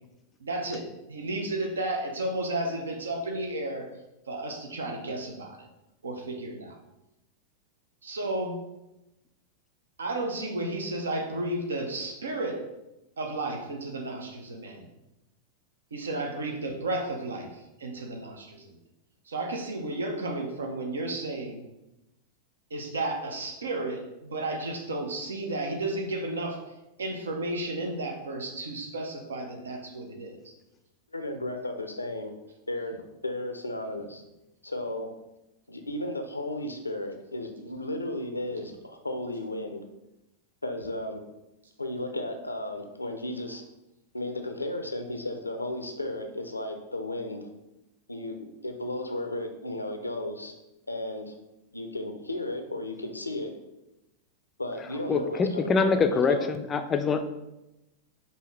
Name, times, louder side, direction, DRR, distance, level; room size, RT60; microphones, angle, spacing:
voice 1, 0.4-3.9 4.3-5.7 6.0-6.8 8.0-8.6 10.0-12.6 13.2-14.9 15.9-18.8 19.3-21.7 22.7-26.7 27.0-30.5, right 2 dB, 70° right, 2 dB, 0.6 m, -33 dB
voice 2, 31.1-32.3 32.7-34.2 34.6-35.1 35.7-39.8 40.6-41.2 41.8-43.6 44.1-47.5 48.1-48.3 48.6-50.5 50.9-51.3 51.7-53.5 54.6-56.5, left 1 dB, 85° left, 6 dB, 0.5 m, -34 dB
voice 3, 55.1-57.2, left 5 dB, 25° left, 7 dB, 0.4 m, -24 dB
5.5 x 2.7 x 3.1 m, 0.94 s
figure-of-eight pair, 90°, 0 cm